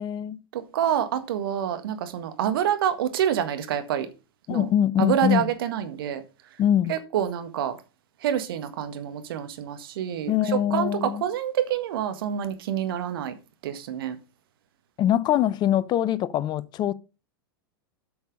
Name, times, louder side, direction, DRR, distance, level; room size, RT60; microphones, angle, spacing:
voice 1, 0.0-0.4 4.5-5.5 6.6-7.0 10.3-11.2 15.0-16.9, left 11 dB, 35° left, 0.7 m, -23 dB
voice 2, 0.5-4.1 4.5-4.7 5.0-6.2 6.9-7.7 8.2-10.3 10.7-13.3 13.6-14.2, right 10 dB, 65° right, 1.6 m, -27 dB
8.1 x 6.4 x 5.2 m
hypercardioid pair, 95°, 13 cm